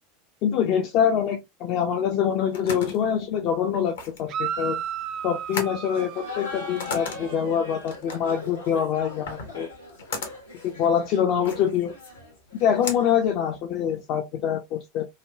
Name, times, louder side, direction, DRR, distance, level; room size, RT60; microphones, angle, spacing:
voice 1, 0.4-4.8 5.2-9.7 10.6-11.9 12.6-15.1, left 8 dB, 50° left, 0.5 m, -25 dB
sound 1, 2.2-14.0, left 4 dB, 70° left, 0.8 m, -38 dB
sound 2, 4.3-7.6, right 8 dB, 45° right, 0.4 m, -34 dB
Laughter, 5.9-13.4, left 3 dB, 85° left, 1.1 m, -40 dB
3.3 x 2.2 x 2.2 m
figure-of-eight pair, 80°, 0 cm